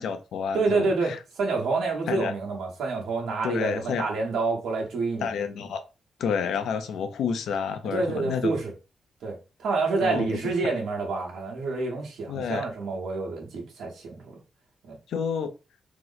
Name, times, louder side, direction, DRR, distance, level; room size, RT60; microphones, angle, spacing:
voice 1, 0.0-1.2 2.1-2.3 3.4-4.0 5.2-5.8 6.2-8.6 10.0-10.4 12.3-12.7 15.1-15.5, left 6 dB, 85° left, 0.4 m, -29 dB
voice 2, 0.5-5.3 7.8-8.7 9.2-14.4 14.8-15.0, right 3 dB, 75° right, 1.0 m, -28 dB
2.9 x 2.0 x 3.9 m
wide cardioid pair, 180°, 0 cm